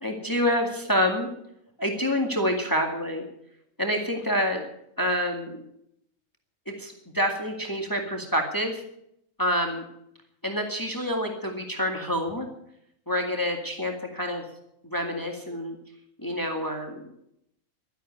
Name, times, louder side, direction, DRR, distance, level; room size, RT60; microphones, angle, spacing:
voice 1, 0.0-1.3 1.8-3.3 3.8-4.6 5.0-5.6 6.7-8.8 9.4-9.8 10.4-12.5 13.1-14.4 14.8-15.8 16.2-17.1, equal, 15° left, 3 dB, 2.1 m, -27 dB
12.5 x 11.0 x 9.4 m, 0.75 s
omnidirectional pair, 1.5 m